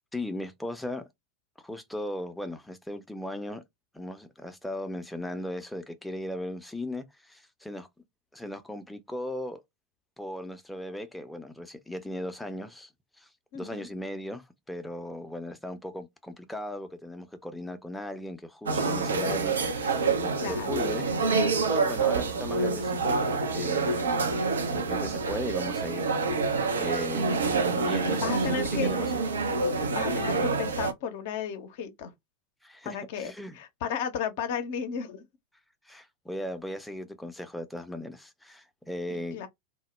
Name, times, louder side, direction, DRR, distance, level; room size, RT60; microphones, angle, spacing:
voice 1, 0.1-1.0 1.6-3.6 3.9-7.9 8.3-9.6 10.2-12.9 13.2-13.3 13.5-24.2 24.7-27.4 27.7-29.2 32.6-33.6 35.9-39.4, left 1 dB, 5° left, 0.5 m, -37 dB
voice 2, 13.5-13.9 20.4-20.8 28.2-28.9 29.9-32.1 32.8-35.2 39.1-39.5, left 6 dB, 55° left, 0.5 m, -34 dB
sound 1, 18.7-30.9, right 4 dB, 75° right, 0.4 m, -27 dB
2.1 x 2.0 x 3.0 m
figure-of-eight pair, 85°, 0 cm